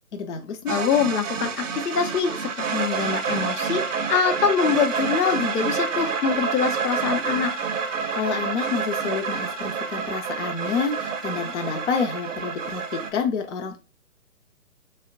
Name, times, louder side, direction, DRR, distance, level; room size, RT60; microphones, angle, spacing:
voice 1, 0.1-0.8 8.1-13.8, left 5 dB, 50° left, 5 dB, 0.5 m, -28 dB
voice 2, 0.7-3.8 4.1-7.5, left 7 dB, 85° left, 6 dB, 0.7 m, -24 dB
sound 1, 0.7-13.1, right 5 dB, 55° right, 0.6 m, -28 dB
2.4 x 2.1 x 3.6 m, 0.32 s
figure-of-eight pair, 140°, 45 cm